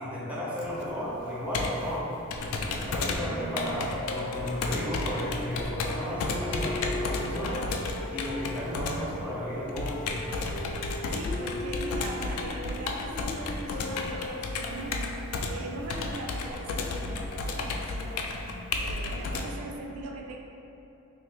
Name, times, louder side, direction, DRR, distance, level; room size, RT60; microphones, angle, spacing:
voice 1, 0.0-2.1 2.4-10.1, equal, 5° right, -7 dB, 0.4 m, -34 dB
Computer keyboard, 0.6-19.4, left 3 dB, 80° left, 0.3 m, -33 dB
Wind instrument woodwind instrument, 3.0-8.9 9.7-15.4, left 1 dB, 50° left, 0.7 m, -40 dB
voice 2, 11.1-20.4, right 1 dB, 80° right, 1 dB, 0.3 m, -40 dB
2.7 x 2.6 x 3.3 m, 2.9 s
head